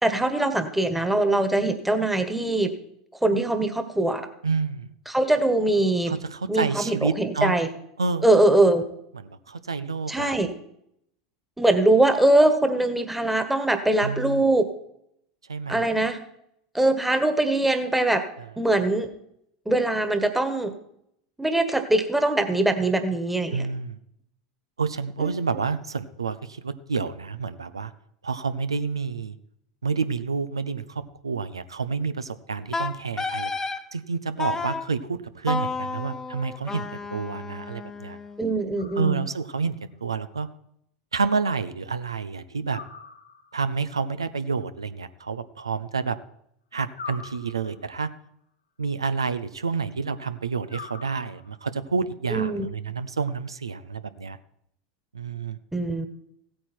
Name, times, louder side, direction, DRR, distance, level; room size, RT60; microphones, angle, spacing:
voice 1, 0.0-2.7 3.2-4.3 5.1-6.1 6.5-7.7 8.2-8.8 10.1-10.5 11.6-14.7 15.7-16.2 16.7-18.2 18.6-19.1 19.6-20.7 21.4-23.7 25.2-25.3 38.4-39.2 52.3-52.7 55.7-56.1, right 2 dB, 5° right, 8 dB, 1.5 m, -22 dB
voice 2, 4.4-4.9 6.1-7.5 8.0-8.3 9.2-10.3 14.0-14.4 15.5-15.9 23.5-24.0 24.8-27.9 28.2-29.4 29.8-38.2 39.0-39.8 40.0-40.5 41.1-42.8 43.5-46.2 46.7-48.1 48.8-54.4 55.1-55.6, right 5 dB, 85° right, 13 dB, 0.6 m, -29 dB
Wind instrument woodwind instrument, 32.7-33.8 34.4-34.8 35.5-38.5, left 4 dB, 15° left, 1.0 m, -31 dB
sound 1, 38.8-39.6 42.7-43.7 46.9-48.0 50.7-51.7, left 5 dB, 85° left, 1.3 m, -43 dB
15.5 x 8.8 x 4.4 m, 0.75 s
hypercardioid pair, 85°, 3 cm